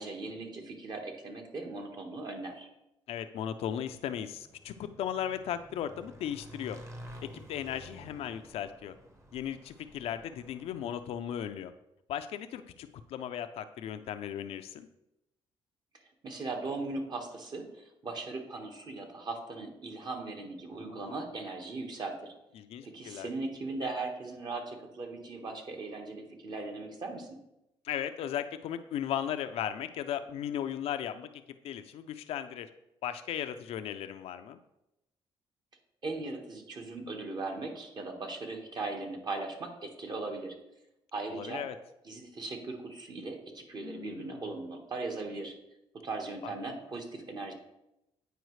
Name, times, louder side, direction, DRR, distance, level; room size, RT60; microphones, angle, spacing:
voice 1, 0.0-2.7 16.2-22.3 22.8-27.4 36.0-40.5 41.1-41.6 42.0-45.5 46.0-47.5, right 3 dB, 45° right, 3 dB, 1.4 m, -38 dB
voice 2, 3.1-6.8 7.5-8.9 9.3-11.7 12.1-14.9 20.7-21.2 22.6-23.3 27.8-32.7 33.0-34.6 41.3-41.8 43.8-44.5 46.4-46.5, left 10 dB, 75° left, 9 dB, 0.5 m, -37 dB
Motorcycle / Engine, 4.3-11.5, equal, 25° right, 1.1 m, -51 dB
9.1 x 4.8 x 3.2 m, 0.89 s
cardioid pair, 85°, 10 cm